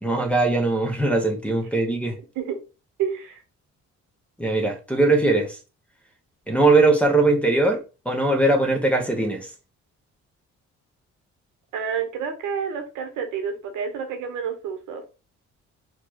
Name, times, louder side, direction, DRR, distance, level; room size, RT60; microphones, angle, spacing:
voice 1, 0.0-2.1 4.4-5.6 6.5-9.5, right 2 dB, 5° left, 1.0 m, -20 dB
voice 2, 3.0-3.4 11.7-15.0, right 7 dB, 90° right, 1.0 m, -29 dB
4.2 x 3.1 x 2.9 m
cardioid pair, 90°, 30 cm